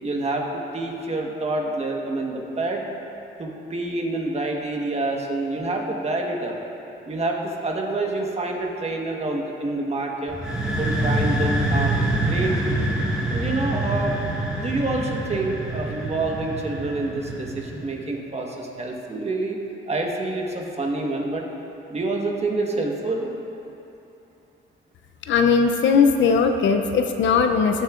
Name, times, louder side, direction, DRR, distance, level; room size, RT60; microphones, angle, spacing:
voice 1, 0.0-2.8 3.4-6.6 7.1-10.4 10.8-12.8 13.3-14.2 14.6-19.6 19.9-21.5 21.9-23.3, right 2 dB, 35° right, 0 dB, 1.3 m, -27 dB
sound 1, 10.3-17.9, right 1 dB, 5° right, 1.8 m, -26 dB
voice 2, 25.3-27.8, left 5 dB, 70° left, 6 dB, 0.6 m, -19 dB
17.5 x 6.4 x 2.5 m, 2.9 s
cardioid pair, 90°, 20 cm